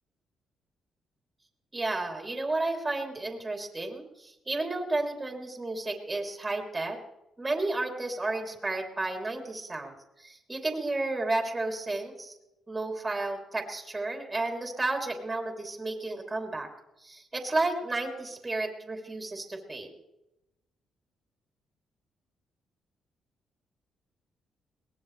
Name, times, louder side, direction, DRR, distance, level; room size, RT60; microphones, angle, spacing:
voice 1, 1.7-7.0 7.4-12.4 12.7-16.7 17.0-19.9, right 2 dB, 15° right, 2 dB, 3.1 m, -32 dB
22.5 x 19.0 x 3.3 m, 0.92 s
cardioid pair, 130°, 0 cm